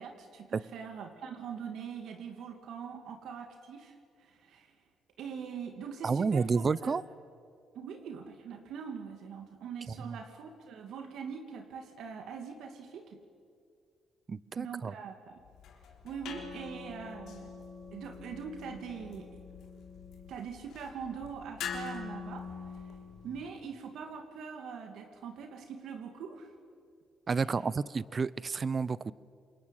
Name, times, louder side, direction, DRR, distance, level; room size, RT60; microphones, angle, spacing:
voice 1, 0.0-4.8 5.2-7.0 7.7-13.2 14.5-15.4 16.0-17.5 17.9-19.3 20.3-22.5 22.7-22.9 23.2-26.5 27.4-27.5, right 6 dB, 75° right, 6 dB, 2.5 m, -43 dB
voice 2, 6.0-7.0 10.0-10.2 14.3-14.9 27.3-29.1, right 5 dB, 40° right, 20 dB, 0.8 m, -30 dB
sound 1, 15.4-23.5, left 6 dB, 80° left, 3.6 m, -44 dB
27.0 x 22.0 x 9.1 m, 2.2 s
cardioid pair, 90°, 0 cm